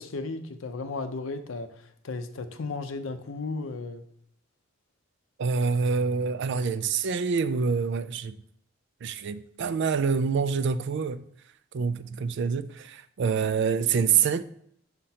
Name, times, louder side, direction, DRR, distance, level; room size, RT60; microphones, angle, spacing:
voice 1, 0.0-4.0, left 3 dB, 70° left, 0.6 m, -35 dB
voice 2, 5.4-8.4 9.0-11.2 11.7-14.4, right 5 dB, 60° right, 0.4 m, -26 dB
6.4 x 5.8 x 2.8 m
head